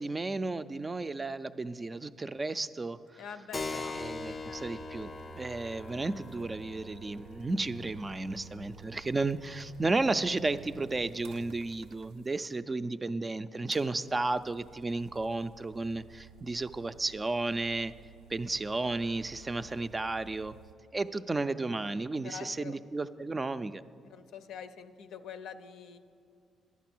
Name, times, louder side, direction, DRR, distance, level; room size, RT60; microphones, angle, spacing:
voice 1, 0.0-3.2 4.0-17.9 18.3-20.5 20.9-23.8, right 3 dB, 25° right, 12 dB, 0.3 m, -33 dB
voice 2, 3.2-4.0 4.4-4.6 21.1-21.2 22.2-22.8 24.0-26.0, left 7 dB, 80° left, 9 dB, 0.5 m, -45 dB
Keyboard (musical), 3.5-11.7, left 3 dB, 30° left, 0.5 m, -44 dB
sound 1, 3.9-12.6 13.7-20.7, right 7 dB, 85° right, 0.4 m, -53 dB
11.0 x 8.3 x 6.0 m, 2.4 s
cardioid pair, 90°, 0 cm